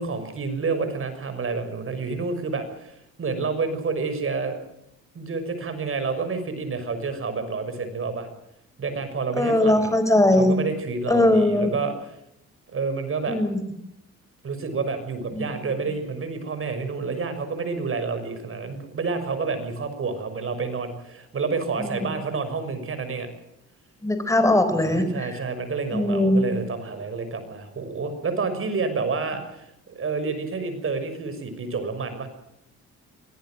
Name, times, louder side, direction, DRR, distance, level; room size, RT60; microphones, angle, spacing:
voice 1, 0.0-4.6 5.1-8.3 8.8-9.9 10.3-12.2 12.7-13.4 14.4-23.3 24.8-32.3, right 4 dB, 45° right, 9 dB, 6.2 m, -29 dB
voice 2, 9.4-10.5 11.1-11.7 13.3-13.6 15.3-15.5 21.8-21.9 24.0-25.1 25.9-26.5, left 1 dB, 10° left, 9 dB, 4.3 m, -20 dB
24.0 x 18.5 x 7.7 m, 0.80 s
cardioid pair, 90°, 30 cm